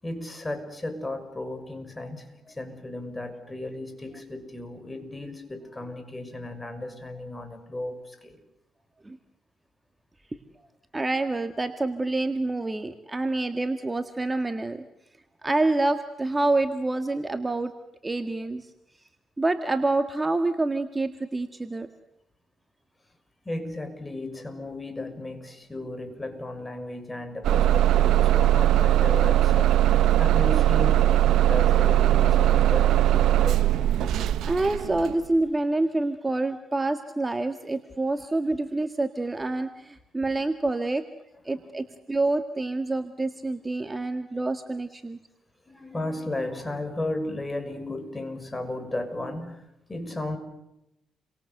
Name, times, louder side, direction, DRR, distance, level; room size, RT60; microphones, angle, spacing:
voice 1, 0.0-8.4 23.4-33.8 38.1-38.3 41.5-41.6 45.7-50.4, left 2 dB, 15° left, 8 dB, 6.3 m, -35 dB
voice 2, 10.9-14.8 15.4-17.7 18.0-18.7 19.4-21.9 34.4-41.0 41.5-45.2, right 2 dB, 20° right, 7 dB, 1.8 m, -27 dB
Bus / Engine starting, 27.4-35.2, right 13 dB, 80° right, 1.0 m, -20 dB
30.0 x 24.0 x 8.0 m, 0.87 s
cardioid pair, 90°, 0 cm